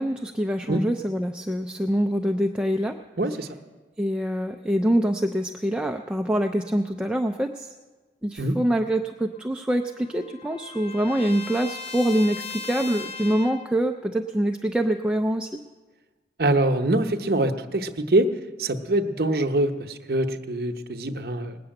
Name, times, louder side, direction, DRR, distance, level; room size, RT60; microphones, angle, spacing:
voice 1, 0.0-3.0 4.0-7.7 8.2-15.6, right 1 dB, 5° right, 4 dB, 0.4 m, -25 dB
voice 2, 3.2-3.5 8.4-8.6 16.4-18.3 18.6-21.6, right 1 dB, 60° right, 7 dB, 0.8 m, -24 dB
Trumpet, 9.3-13.7, left 4 dB, 35° left, 0.7 m, -38 dB
20.0 x 6.9 x 8.9 m, 1.3 s
head